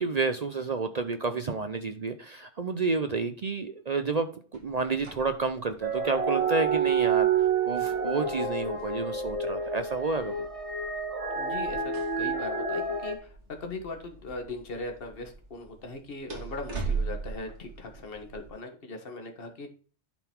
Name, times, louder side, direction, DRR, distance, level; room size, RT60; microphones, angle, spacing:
voice 1, 0.0-10.3, right 4 dB, 45° right, 9 dB, 0.5 m, -30 dB
sound 1, 4.5-18.5, right 4 dB, 65° right, 2.5 m, -41 dB
sound 2, 5.8-13.2, right 5 dB, 30° right, 1.3 m, -28 dB
voice 2, 11.3-13.3 13.6-19.7, left 2 dB, 50° left, 4 dB, 1.5 m, -39 dB
11.0 x 3.9 x 4.4 m, 0.40 s
omnidirectional pair, 1.3 m